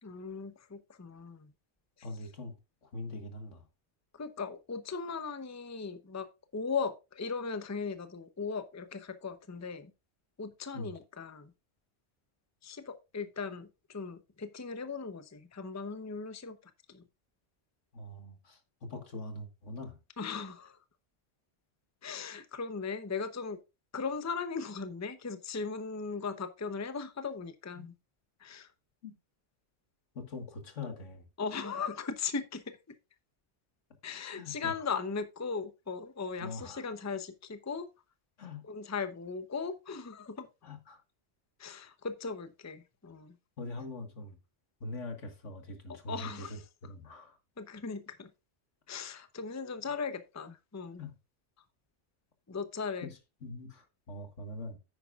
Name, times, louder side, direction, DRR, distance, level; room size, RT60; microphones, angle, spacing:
voice 1, 0.0-1.5 4.1-6.3 6.5-9.9 10.4-11.5 12.6-16.6 16.9-17.0 20.2-20.8 22.0-23.6 23.9-27.9 28.4-28.7 31.4-32.6 34.0-37.9 38.6-40.5 41.6-43.4 45.9-46.6 47.6-48.3 48.9-51.0 52.5-53.1, left 5 dB, 15° left, 0.6 m, -38 dB
voice 2, 2.0-2.6 2.8-3.7 10.7-10.9 17.9-20.0 27.7-27.9 29.0-29.1 30.2-31.3 34.3-34.9 36.4-36.9 38.4-38.6 40.6-41.0 43.6-44.4 44.8-47.4 51.0-51.1 53.0-54.8, left 2 dB, 80° left, 2.0 m, -43 dB
10.0 x 9.0 x 2.4 m
omnidirectional pair, 1.2 m